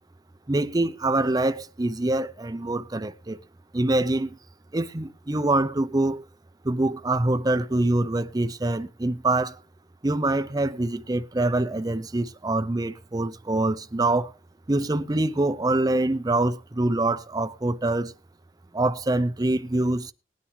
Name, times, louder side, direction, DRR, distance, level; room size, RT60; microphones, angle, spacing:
voice 1, 0.5-3.4 3.7-4.4 4.7-6.2 6.6-9.6 10.0-14.3 14.7-18.1 18.7-20.1, right 2 dB, 20° right, 0.6 m, -25 dB
19.5 x 10.0 x 3.2 m
head